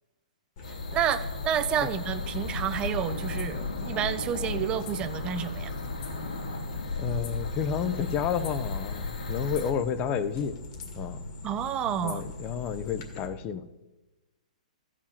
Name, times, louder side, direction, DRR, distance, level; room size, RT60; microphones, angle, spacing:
sound 1, 0.6-9.7, left 3 dB, 70° left, 2.3 m, -35 dB
sound 2, 0.6-13.2, left 2 dB, 45° left, 2.0 m, -41 dB
voice 1, 0.9-5.7 11.4-12.2, right 9 dB, 25° right, 10 dB, 0.7 m, -29 dB
voice 2, 7.0-10.6 11.0-11.2 12.0-13.7, left 7 dB, 25° left, 12 dB, 0.7 m, -31 dB
14.0 x 5.0 x 7.2 m, 1.1 s
figure-of-eight pair, 120°, 4 cm